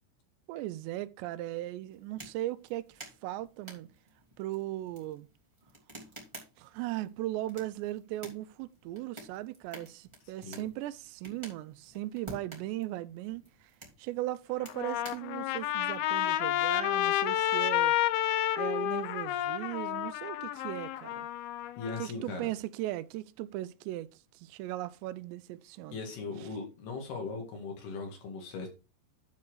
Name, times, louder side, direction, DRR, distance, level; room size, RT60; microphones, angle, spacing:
voice 1, 0.5-3.9 4.4-5.3 6.6-13.7 14.0-18.0 18.6-21.3 22.0-26.0, right 15 dB, 85° right, 2.7 m, -38 dB
sound 1, 1.9-16.2, right 1 dB, 10° right, 1.7 m, -52 dB
Trumpet, 14.6-22.1, left 12 dB, 85° left, 2.2 m, -30 dB
voice 2, 21.8-22.4 25.9-28.7, left 4 dB, 65° left, 3.8 m, -39 dB
11.5 x 4.1 x 4.8 m
omnidirectional pair, 5.1 m